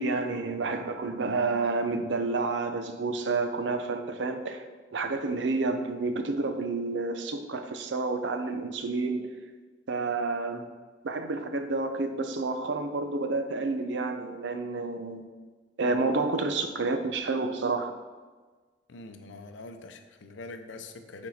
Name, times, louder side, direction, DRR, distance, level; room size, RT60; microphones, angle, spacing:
voice 1, 0.0-4.6 4.9-9.2 9.9-10.6 11.0-15.2 15.8-17.9, right 3 dB, 70° right, 7 dB, 0.6 m, -29 dB
voice 2, 18.9-21.3, left 3 dB, 80° left, 7 dB, 0.6 m, -43 dB
6.4 x 4.4 x 4.2 m, 1.4 s
head